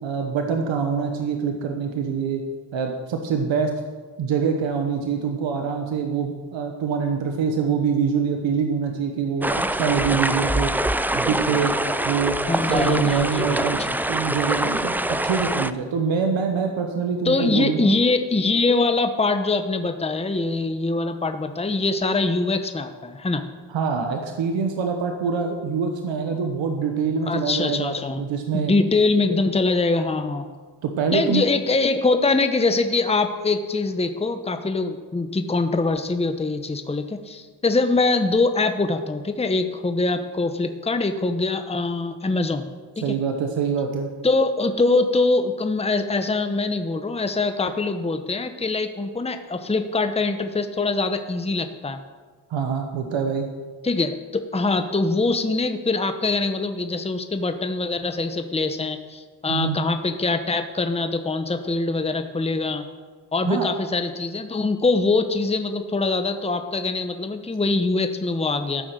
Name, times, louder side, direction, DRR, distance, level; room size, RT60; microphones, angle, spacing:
voice 1, 0.0-2.4 2.7-3.7 4.2-10.7 11.1-11.8 12.0-13.8 14.1-18.0 23.7-28.7 30.8-31.4 43.0-44.1 52.5-53.5 59.5-59.8 63.4-63.7, right 6 dB, 85° right, 3 dB, 1.1 m, -25 dB
sound 1, 9.4-15.7, right 1 dB, 5° right, 0.3 m, -24 dB
voice 2, 12.5-14.0 17.2-23.4 27.3-28.2 28.5-30.4 31.1-42.7 43.0-43.1 44.2-52.0 53.8-62.8 63.3-68.8, left 3 dB, 15° left, 8 dB, 0.9 m, -23 dB
14.0 x 5.8 x 6.6 m, 1.4 s
cardioid pair, 65°, 44 cm